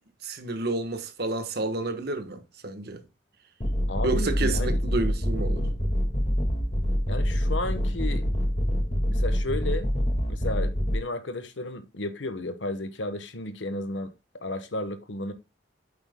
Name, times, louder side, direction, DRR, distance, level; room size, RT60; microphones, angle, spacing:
voice 1, 0.2-3.0 4.0-5.7, right 2 dB, 60° right, 1.3 m, -30 dB
sound 1, 3.6-11.0, equal, 35° left, 1.9 m, -26 dB
voice 2, 3.9-4.8 7.1-8.3 9.1-9.9 10.3-14.1 14.4-15.3, left 2 dB, 85° left, 1.2 m, -33 dB
8.9 x 7.9 x 2.2 m
head